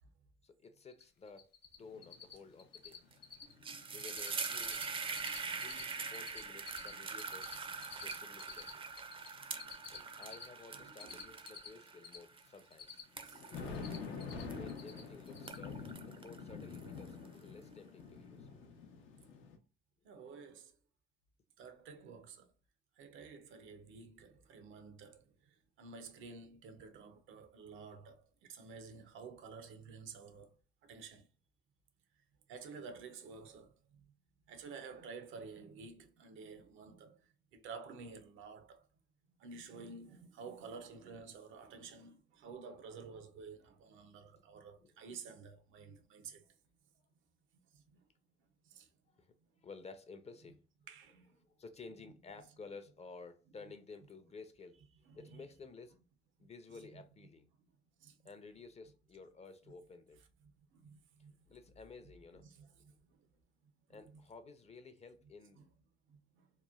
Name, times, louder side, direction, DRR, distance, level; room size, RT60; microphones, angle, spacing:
voice 1, 0.4-1.5 1.8-3.0 3.9-4.8 5.3-8.8 9.9-13.0 13.5-13.9 14.5-15.8 16.1-18.7 44.8-44.9 49.1-49.3 49.6-50.6 51.4-54.8 55.1-56.0 56.4-57.5 58.2-60.2 61.5-62.5 62.9-63.0 63.9-65.6, left 4 dB, 35° left, 0.5 m, -54 dB
Cricket, 0.9-1.0 1.3-1.8 2.0-2.3 2.6-3.0 3.2-3.5 3.8-4.3 4.5-5.8 6.1-9.3 9.6-12.2 12.5-13.3 13.5-14.4 14.7-15.0 15.3-15.6, left 7 dB, 55° left, 1.0 m, -50 dB
sound 1, 1.8-2.2 2.5-8.5 9.2-10.5 13.1-19.6, left 5 dB, 85° left, 0.6 m, -48 dB
sound 2, 2.9-3.1 3.4-15.0 15.3-17.3, right 5 dB, 25° right, 0.4 m, -43 dB
voice 2, 10.7-11.2 13.2-13.4 20.0-20.7 21.6-22.5 23.0-30.6 30.8-31.3 32.5-34.1 34.5-38.9 39.4-46.5 47.7-48.0 48.6-48.9 50.5-50.6 50.9-51.4 52.4-52.5 55.1-55.4 56.4-57.0 57.6-57.7 58.0-58.2 60.4-61.6 62.3-63.3 63.6-64.3 65.6-65.7 66.1-66.5, right 5 dB, 80° right, 0.5 m, -52 dB
3.0 x 2.1 x 2.3 m
cardioid pair, 90°, 20 cm